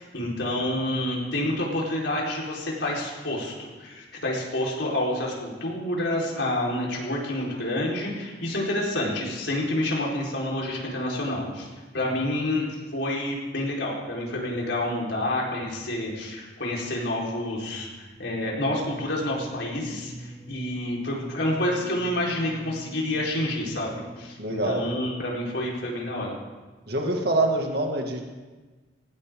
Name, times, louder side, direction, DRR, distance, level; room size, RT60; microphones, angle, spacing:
voice 1, 0.0-11.7 11.9-26.3, left 1 dB, 80° left, -3 dB, 4.7 m, -28 dB
sound 1, 17.5-25.2, equal, ahead, 2.4 m, -45 dB
voice 2, 24.4-24.8 26.9-28.2, right 2 dB, 60° right, 1 dB, 2.3 m, -25 dB
18.5 x 18.5 x 3.9 m, 1.3 s
head